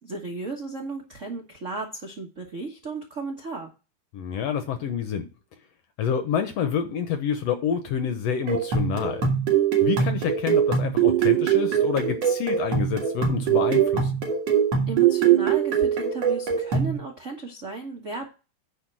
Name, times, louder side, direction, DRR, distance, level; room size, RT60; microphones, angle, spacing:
voice 1, 0.0-3.7 14.9-18.3, right 3 dB, 80° right, 0.6 m, -34 dB
voice 2, 4.1-5.3 6.0-9.3 9.8-14.1, left 7 dB, 70° left, 1.6 m, -28 dB
sound 1, 8.5-17.0, right 8 dB, 55° right, 2.7 m, -22 dB
10.0 x 3.7 x 7.4 m
omnidirectional pair, 3.7 m